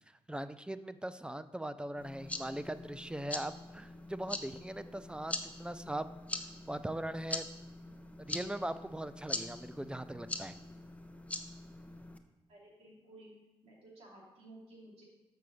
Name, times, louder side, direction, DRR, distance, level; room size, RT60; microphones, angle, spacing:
voice 1, 0.3-6.1 6.7-7.5 8.2-10.6, right 1 dB, 10° right, 13 dB, 0.5 m, -40 dB
sound 1, 2.0-12.2, left 2 dB, 15° left, 0.9 m, -43 dB
voice 2, 12.5-13.3 13.6-15.0, right 1 dB, 75° right, -5 dB, 3.3 m, -55 dB
6.7 x 6.2 x 6.4 m, 1.1 s
cardioid pair, 65°, 11 cm